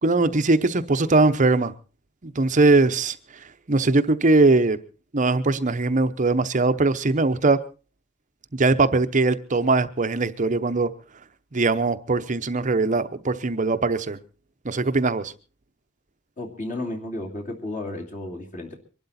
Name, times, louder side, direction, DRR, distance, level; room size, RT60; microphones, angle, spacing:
voice 1, 0.0-1.7 2.2-3.2 3.7-4.8 5.1-7.6 8.5-10.9 11.5-14.2 14.6-15.3, right 3 dB, 35° right, 0.8 m, -21 dB
voice 2, 16.4-18.8, left 1 dB, 35° left, 2.7 m, -33 dB
23.5 x 12.0 x 4.2 m
head